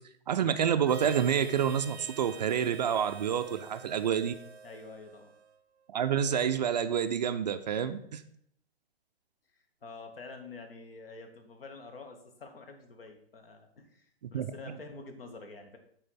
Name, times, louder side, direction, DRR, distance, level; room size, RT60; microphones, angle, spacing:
voice 1, 0.3-4.3 5.9-8.2 14.3-14.5, right 8 dB, 45° right, 10 dB, 0.4 m, -28 dB
Harmonica, 0.8-5.6, right 5 dB, 85° right, 0.6 m, -49 dB
voice 2, 4.6-5.3 9.5-15.8, left 3 dB, 65° left, 5 dB, 1.4 m, -48 dB
7.6 x 4.4 x 4.2 m, 0.69 s
figure-of-eight pair, 120°, 32 cm